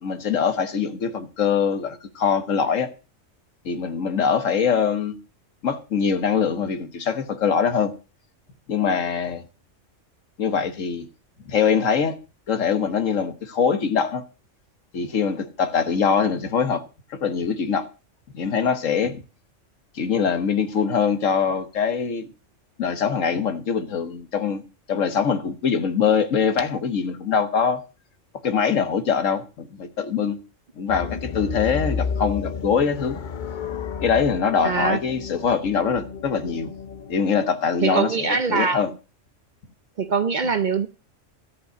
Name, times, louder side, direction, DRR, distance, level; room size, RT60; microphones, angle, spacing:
voice 1, 0.0-2.9 3.6-5.2 5.6-7.9 8.7-9.4 10.4-11.1 11.5-12.2 12.5-14.2 14.9-16.8 17.1-17.9 18.3-19.2 19.9-22.3 22.8-24.6 24.9-27.8 28.4-30.4 30.8-33.2 34.0-36.7 37.1-38.9, left 6 dB, 85° left, 1.6 m, -23 dB
sound 1, 30.9-37.1, left 6 dB, 45° left, 0.7 m, -32 dB
voice 2, 34.6-35.0 37.8-38.8 40.0-40.9, right 5 dB, 45° right, 0.7 m, -23 dB
13.5 x 5.4 x 7.9 m
omnidirectional pair, 1.3 m